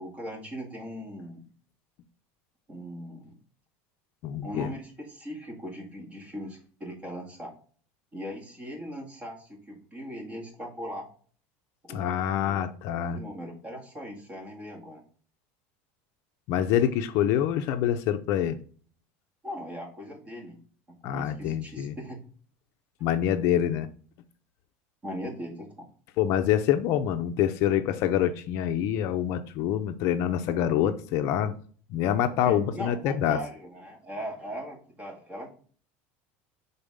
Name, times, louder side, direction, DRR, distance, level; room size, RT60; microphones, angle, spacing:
voice 1, 0.0-1.4 2.7-3.4 4.4-7.5 8.1-11.1 11.8-12.6 13.1-15.0 19.4-20.6 21.1-22.2 25.0-25.9 32.5-35.7, equal, 20° right, 1.9 m, -39 dB
voice 2, 4.2-4.7 11.9-13.2 16.5-18.6 21.0-21.9 23.0-23.9 26.2-31.5 31.9-33.4, left 10 dB, 55° left, 0.6 m, -26 dB
6.7 x 4.0 x 3.6 m
cardioid pair, 150°, 6 cm